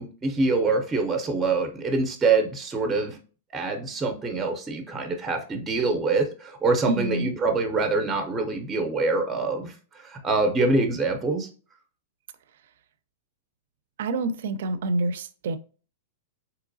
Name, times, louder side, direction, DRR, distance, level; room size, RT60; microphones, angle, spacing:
voice 1, 0.0-3.2 3.5-11.5, right 3 dB, 15° right, 0.5 m, -25 dB
voice 2, 6.8-7.3 14.0-15.6, right 2 dB, 70° right, 0.4 m, -27 dB
3.7 x 2.9 x 2.6 m
supercardioid pair, 155°, 0 cm